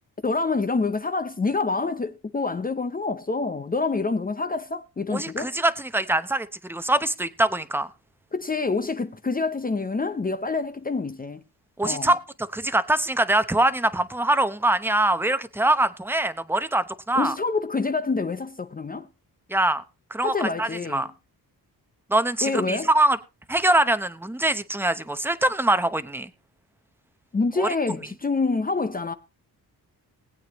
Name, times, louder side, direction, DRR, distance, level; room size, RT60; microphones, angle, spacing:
voice 1, 0.2-5.5 8.3-11.4 11.8-12.1 17.1-19.1 20.2-21.1 22.4-22.9 27.3-29.1, left 3 dB, 20° left, 0.6 m, -27 dB
voice 2, 5.1-7.9 11.8-12.2 12.5-17.3 19.5-19.8 20.1-21.1 22.1-23.2 23.5-26.3 27.6-27.7, right 1 dB, 5° right, 0.8 m, -23 dB
20.0 x 8.7 x 3.0 m
wide cardioid pair, 115°, 39 cm